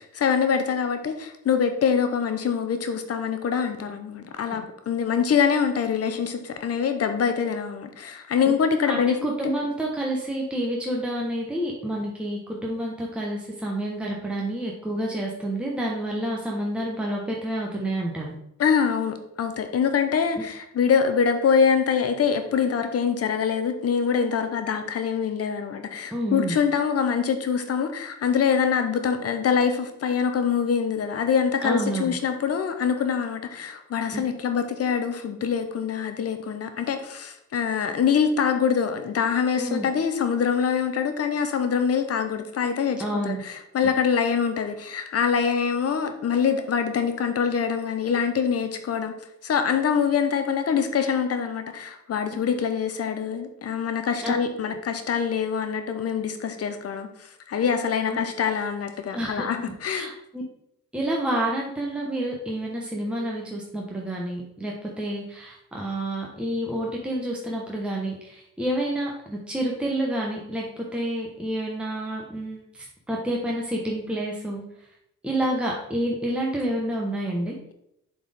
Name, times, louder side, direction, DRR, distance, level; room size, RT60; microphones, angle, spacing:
voice 1, 0.0-9.2 9.4-9.5 18.6-49.2 49.4-60.1, left 7 dB, 50° left, 7 dB, 0.9 m, -24 dB
voice 2, 8.8-18.3 20.4-20.5 26.1-26.6 31.6-32.1 34.1-34.2 39.6-39.8 43.0-43.4 54.2-54.3 58.1-58.2 59.1-59.5 59.8-60.4 60.9-74.9 75.2-77.6, right 1 dB, 5° right, -2 dB, 1.2 m, -29 dB
7.0 x 4.4 x 3.6 m, 0.78 s
supercardioid pair, 70°, 32 cm